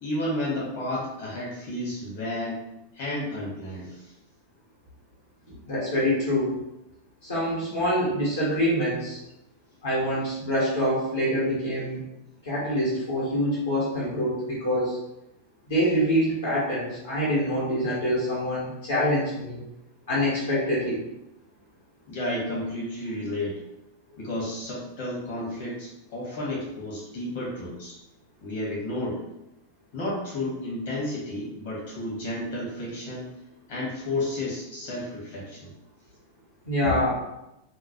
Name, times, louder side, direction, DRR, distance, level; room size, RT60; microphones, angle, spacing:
voice 1, 0.0-2.6 2.9-4.1 22.1-23.6 24.2-28.0 28.4-29.2 29.9-33.3 33.7-35.7, left 1 dB, 50° left, -5 dB, 1.2 m, -32 dB
voice 2, 5.7-6.5 7.2-9.2 9.8-12.0 12.4-15.0 15.7-19.6 20.1-21.0 36.7-37.1, equal, 70° left, -7 dB, 1.0 m, -25 dB
3.0 x 2.1 x 2.8 m, 0.88 s
figure-of-eight pair, 90°, 0 cm